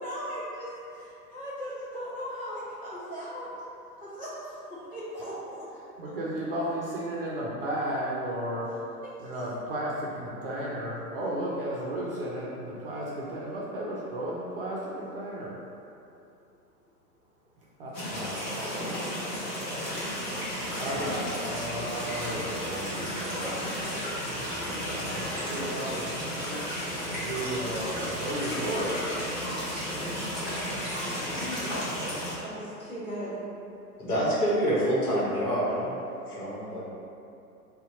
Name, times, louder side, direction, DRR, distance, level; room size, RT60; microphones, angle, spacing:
voice 1, 0.0-3.5 4.0-5.6 9.0-9.4 13.3-13.4 18.3-19.4 20.8-21.4 22.9-23.0 23.3-24.6 25.3-25.8 28.5-28.6 31.3-31.8 32.4-33.4, equal, 35° left, -10 dB, 1.4 m, -39 dB
voice 2, 6.0-8.7 9.2-15.5 17.8-18.4 20.8-23.4 24.2-26.3 27.1-29.0, right 1 dB, 40° right, -5 dB, 0.4 m, -34 dB
sound 1, 17.9-32.3, equal, 20° left, 0.7 m, -34 dB
sound 2, 20.2-31.8, equal, 5° right, 1.0 m, -40 dB
voice 3, 34.0-36.0 36.3-36.8, equal, 70° left, -7 dB, 1.1 m, -26 dB
2.7 x 2.2 x 3.7 m, 2.7 s
figure-of-eight pair, 110°, 47 cm